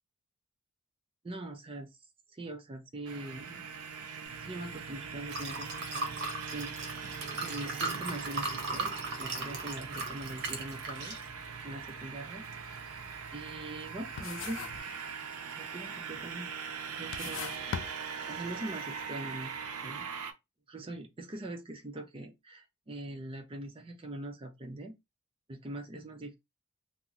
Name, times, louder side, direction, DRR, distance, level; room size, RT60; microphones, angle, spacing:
voice 1, 1.2-2.0 2.3-3.6 4.4-6.1 6.5-6.7 7.1-7.2 7.4-8.9 9.2-11.2 11.6-13.0 13.3-14.7 15.2-16.5 16.9-20.1 20.7-24.9 25.5-26.3, right 1 dB, 25° right, 0.4 m, -42 dB
sound 1, 3.1-20.3, right 6 dB, 75° right, 0.5 m, -41 dB
Liquid, 4.3-14.8, right 3 dB, 50° right, 0.9 m, -40 dB
sound 2, 12.3-12.5 12.9-13.9 14.2-14.9 15.2-15.8 16.4-16.5 16.9-18.6, left 8 dB, 55° left, 0.3 m, -40 dB
2.8 x 2.0 x 3.6 m
head